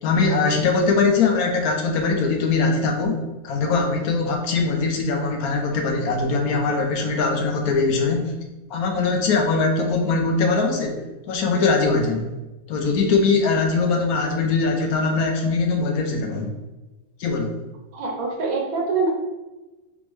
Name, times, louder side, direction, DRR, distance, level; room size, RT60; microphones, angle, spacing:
voice 1, 0.0-8.3 8.7-12.3 12.7-16.5 17.2-17.6, left 4 dB, 90° left, 2 dB, 1.2 m, -21 dB
voice 2, 17.9-19.1, right 4 dB, 85° right, 0 dB, 1.3 m, -24 dB
3.9 x 3.6 x 3.1 m, 1.1 s
omnidirectional pair, 1.5 m